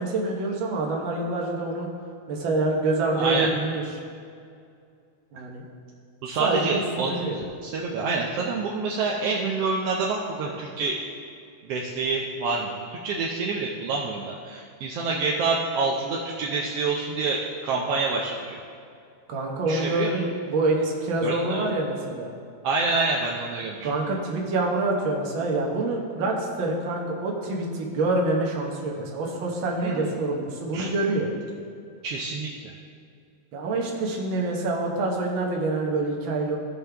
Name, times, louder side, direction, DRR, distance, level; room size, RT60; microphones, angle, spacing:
voice 1, 0.0-1.9 2.3-4.0 5.3-5.6 6.4-7.4 19.3-22.3 23.8-31.3 33.5-36.6, right 2 dB, 55° right, -1 dB, 1.5 m, -26 dB
voice 2, 3.1-3.5 6.2-11.0 11.6-18.6 19.7-20.1 21.2-21.7 22.6-23.9 29.8-30.1 30.7-30.9 32.0-32.5, right 4 dB, 80° right, -2 dB, 1.4 m, -27 dB
16.0 x 5.5 x 3.4 m, 2.4 s
omnidirectional pair, 3.5 m